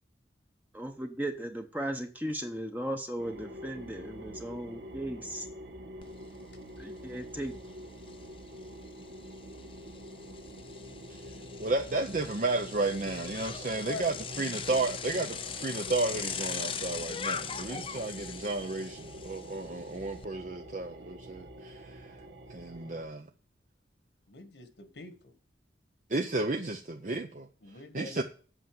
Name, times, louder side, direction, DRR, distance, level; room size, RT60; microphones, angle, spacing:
voice 1, 0.7-5.5 6.8-7.5, right 1 dB, 10° right, 5 dB, 0.8 m, -36 dB
sound 1, 3.2-23.0, right 1 dB, 75° right, 1.3 m, -46 dB
Bicycle, 6.0-6.1 6.5-20.3, left 7 dB, 30° left, 0.6 m, -41 dB
voice 2, 11.6-22.1 22.5-23.3 26.1-27.5 27.9-28.2, right 2 dB, 45° right, 5 dB, 0.6 m, -33 dB
voice 3, 24.3-25.3 27.6-28.2, left 2 dB, 80° left, 9 dB, 1.5 m, -44 dB
8.1 x 5.6 x 7.7 m, 0.40 s
head